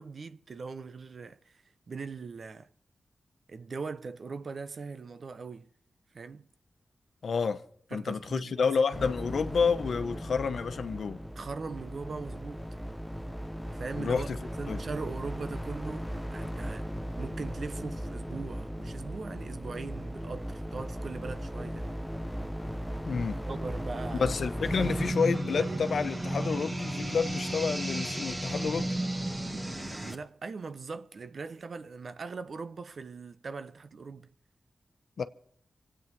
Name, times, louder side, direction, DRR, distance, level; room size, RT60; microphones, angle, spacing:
voice 1, 0.0-2.7 3.5-5.7 6.1-6.5 7.9-8.7 11.4-12.6 13.7-14.3 14.6-16.9 17.2-21.9 23.5-24.3 24.8-25.0 25.3-25.9 30.0-34.3, right 4 dB, 70° right, 0.9 m, -40 dB
voice 2, 7.2-7.6 7.9-11.2 13.9-14.4 14.7-14.8 23.0-23.4 24.1-28.9 35.2-35.3, left 5 dB, 80° left, 1.0 m, -29 dB
sound 1, 8.9-25.1, equal, ahead, 0.9 m, -37 dB
sound 2, 24.6-30.2, right 1 dB, 25° right, 2.1 m, -33 dB
26.0 x 8.9 x 5.3 m
cardioid pair, 45°, 0 cm